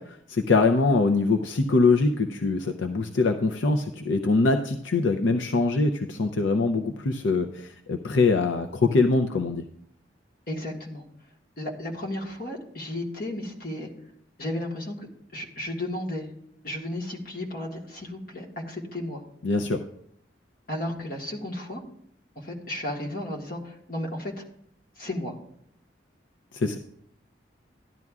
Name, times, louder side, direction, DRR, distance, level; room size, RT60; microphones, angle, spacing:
voice 1, 0.0-9.6 19.4-19.8 26.5-26.8, left 3 dB, 80° left, 5 dB, 0.5 m, -23 dB
voice 2, 10.5-11.0 11.6-13.9 14.4-14.9 15.3-16.3 16.6-19.2 20.7-21.8 22.3-24.4 25.0-25.3, left 1 dB, 50° left, 0 dB, 1.7 m, -33 dB
13.5 x 10.5 x 2.4 m, 0.72 s
head